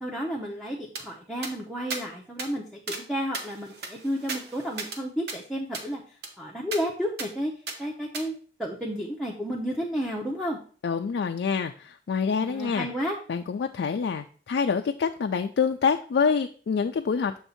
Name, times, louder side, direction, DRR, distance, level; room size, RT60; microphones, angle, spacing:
voice 1, 0.0-6.0 6.4-7.5 7.8-8.3 8.6-10.6 12.4-13.2, equal, ahead, -2 dB, 0.6 m, -31 dB
sound 1, 1.0-1.1 1.4-1.5 1.9-2.0 2.4-2.5 2.9-3.0 3.3-5.0 5.3-5.4 5.7-5.9 6.2-6.3 6.7-6.8 7.2-7.3 7.7-7.8 8.1-8.3, right 3 dB, 65° right, 0.9 m, -36 dB
voice 2, 10.8-12.9 13.3-17.4, left 6 dB, 75° left, 5 dB, 0.3 m, -26 dB
7.0 x 2.7 x 5.6 m, 0.43 s
head